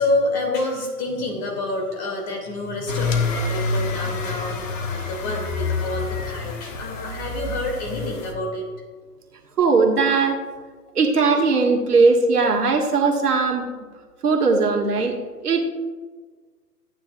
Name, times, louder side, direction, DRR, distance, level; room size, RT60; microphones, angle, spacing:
voice 1, 0.0-8.8, left 2 dB, 30° left, 1 dB, 2.5 m, -27 dB
sound 1, 2.9-8.3, left 4 dB, 55° left, 1.5 m, -27 dB
voice 2, 9.6-10.4 11.0-13.7 14.2-15.2 15.4-15.6, right 4 dB, 70° right, 1 dB, 2.0 m, -19 dB
14.5 x 9.5 x 2.4 m, 1.4 s
figure-of-eight pair, 130°, 48 cm